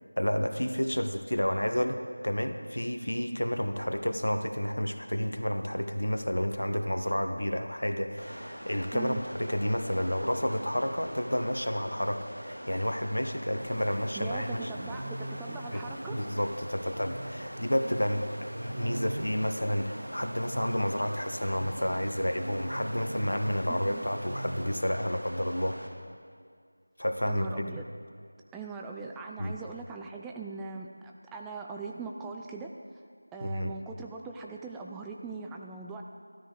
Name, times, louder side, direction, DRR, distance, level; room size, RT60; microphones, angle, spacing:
voice 1, 0.2-14.7 15.7-15.8 16.1-25.8 27.0-27.8 29.4-29.6 33.4-33.7, equal, 80° left, 7 dB, 1.1 m, -30 dB
sound 1, 8.2-25.9, equal, 90° right, 2.0 m, -43 dB
sound 2, 13.6-25.3, right 1 dB, 55° right, 0.8 m, -42 dB
voice 2, 14.2-16.2 23.9-24.0 27.3-27.9 28.5-32.7 33.3-36.0, right 4 dB, 5° right, 0 dB, 0.3 m, -40 dB
13.0 x 13.0 x 4.7 m, 2.1 s
figure-of-eight pair, 170°, 0 cm